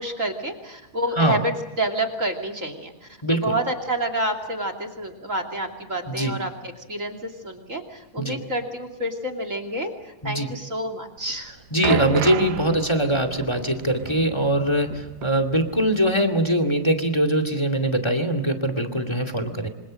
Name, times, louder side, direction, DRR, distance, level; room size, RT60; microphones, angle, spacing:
voice 1, 0.0-2.9 3.3-9.9 10.2-11.6, right 1 dB, 25° right, 8 dB, 2.7 m, -28 dB
voice 2, 3.2-3.5 6.1-6.4 8.2-8.4 10.2-10.5 11.7-14.9 15.2-19.7, right 1 dB, 10° left, 9 dB, 1.8 m, -22 dB
sound 1, 11.2-16.1 16.4-16.5 17.3-17.4, right 9 dB, 85° right, 2.8 m, -32 dB
27.0 x 25.5 x 6.4 m, 1.0 s
omnidirectional pair, 3.8 m